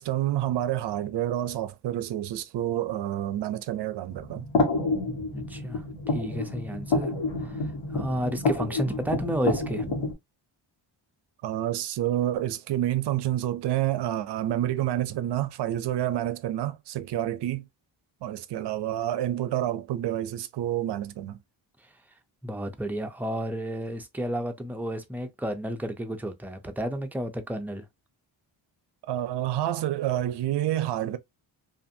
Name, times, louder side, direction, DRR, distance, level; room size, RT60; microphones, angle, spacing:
voice 1, 0.0-4.5 11.4-17.7 18.2-21.4 29.1-31.2, right 12 dB, 65° right, 0.5 m, -28 dB
sound 1, 4.1-10.1, left 3 dB, 75° left, 1.3 m, -29 dB
voice 2, 5.3-7.1 7.4-7.6 7.9-9.9 22.4-27.8, right 1 dB, 5° right, 0.4 m, -32 dB
2.5 x 2.5 x 2.6 m
cardioid pair, 110°, 46 cm